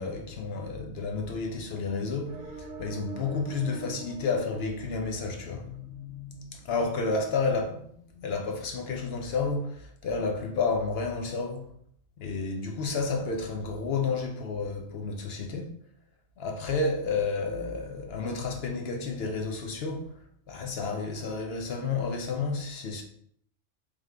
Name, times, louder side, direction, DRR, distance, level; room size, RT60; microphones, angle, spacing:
voice 1, 0.0-11.7 12.2-15.7 16.4-20.1 20.5-23.0, left 4 dB, 60° left, 0.8 m, -31 dB
sound 1, 2.3-5.9, right 3 dB, 80° right, 1.1 m, -44 dB
3.5 x 3.4 x 3.3 m
omnidirectional pair, 1.4 m